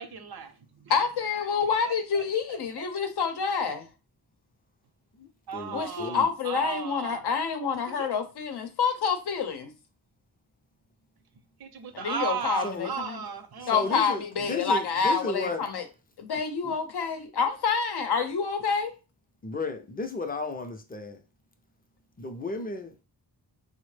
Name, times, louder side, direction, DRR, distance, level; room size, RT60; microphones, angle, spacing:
voice 1, 0.0-0.9 1.8-2.9 5.5-7.2 7.9-8.1 11.6-14.0, right 7 dB, 70° right, 0.7 m, -36 dB
voice 2, 0.9-3.9 5.7-9.7 11.9-13.2 13.7-15.9 16.2-18.9, left 5 dB, 80° left, 0.7 m, -28 dB
voice 3, 5.2-6.3 12.6-12.9 13.6-15.6 16.6-16.7 19.4-21.2 22.2-22.9, left 3 dB, 25° left, 0.5 m, -34 dB
4.3 x 2.1 x 3.2 m
wide cardioid pair, 135°, 39 cm